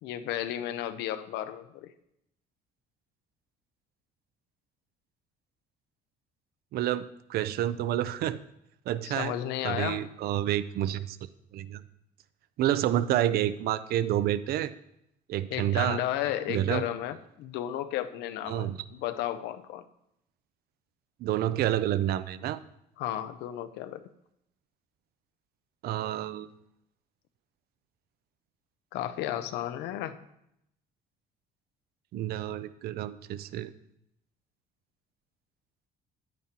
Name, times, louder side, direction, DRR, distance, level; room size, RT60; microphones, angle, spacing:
voice 1, 0.0-1.9 9.0-10.1 15.5-19.8 23.0-24.0 28.9-30.2, left 12 dB, 90° left, 11 dB, 0.6 m, -33 dB
voice 2, 6.7-8.4 8.9-9.4 9.6-11.2 11.5-11.8 12.6-14.7 15.3-16.0 16.5-16.8 18.5-18.8 21.2-22.6 25.8-26.5 32.1-33.7, right 12 dB, 65° right, 15 dB, 0.4 m, -29 dB
9.2 x 9.1 x 2.9 m, 0.78 s
cardioid pair, 110°, 17 cm